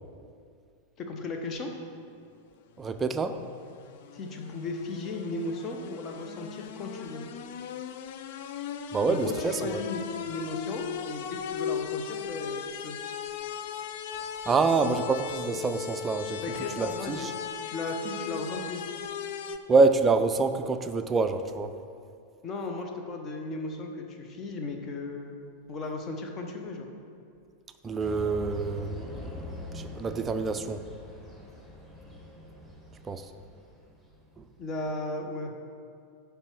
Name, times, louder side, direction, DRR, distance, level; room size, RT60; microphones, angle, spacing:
voice 1, 1.0-1.7 4.1-7.2 9.1-13.0 16.4-17.3 17.6-18.8 22.4-26.9 34.6-35.5, left 2 dB, 30° left, 3 dB, 0.9 m, -36 dB
sound 1, 2.8-19.6, left 8 dB, 50° left, 0.4 m, -38 dB
voice 2, 2.8-3.4 8.9-9.8 14.5-16.4 16.8-17.3 19.7-21.7 27.8-30.8 33.0-33.3 34.4-34.5, right 4 dB, 20° right, 9 dB, 0.4 m, -26 dB
sound 2, 28.0-34.4, left 1 dB, 5° left, 1.8 m, -43 dB
9.8 x 3.4 x 6.0 m, 2.4 s
figure-of-eight pair, 90°, 0 cm